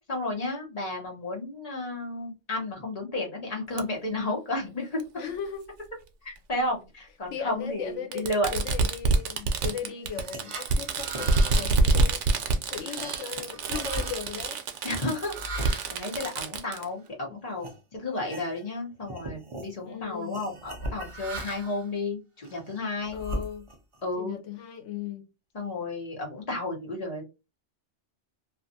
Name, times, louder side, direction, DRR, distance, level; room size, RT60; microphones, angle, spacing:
voice 1, 0.1-5.0 6.2-8.5 14.8-23.2 24.0-24.4 25.5-27.2, left 2 dB, 35° left, 1.0 m, -32 dB
Fireworks, 3.8-3.9 5.0-5.1 6.4-6.5 8.1-16.8, right 3 dB, 85° right, 0.9 m, -26 dB
voice 2, 5.2-5.6 7.3-12.2 12.7-14.6 19.8-20.4 23.1-23.7 24.2-25.2, left 7 dB, 80° left, 1.0 m, -37 dB
sound 1, 10.0-17.1 17.6-17.8 18.2-18.8 19.0-19.7 20.3-21.8 22.4-24.0, right 1 dB, 45° right, 0.4 m, -39 dB
2.5 x 2.3 x 2.6 m
omnidirectional pair, 1.2 m